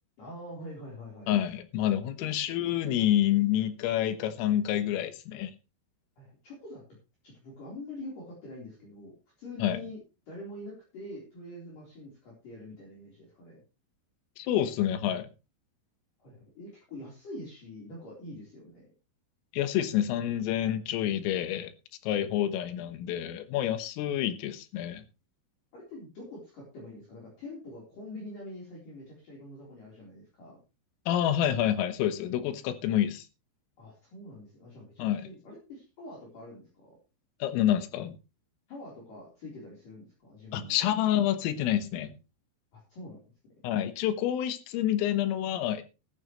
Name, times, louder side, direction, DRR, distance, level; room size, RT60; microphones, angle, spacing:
voice 1, 0.2-1.3 6.2-6.8 7.2-10.0 10.3-13.6 16.2-18.9 25.7-30.6 33.8-37.0 38.7-40.9 42.7-43.2, left 1 dB, 45° left, 5.3 m, -45 dB
voice 2, 1.3-5.5 9.6-9.8 14.4-15.3 19.5-21.7 22.0-25.0 31.1-33.3 35.0-35.2 37.4-38.2 40.5-42.1 43.6-45.8, left 11 dB, 85° left, 3.9 m, -28 dB
14.5 x 12.5 x 3.1 m
omnidirectional pair, 5.9 m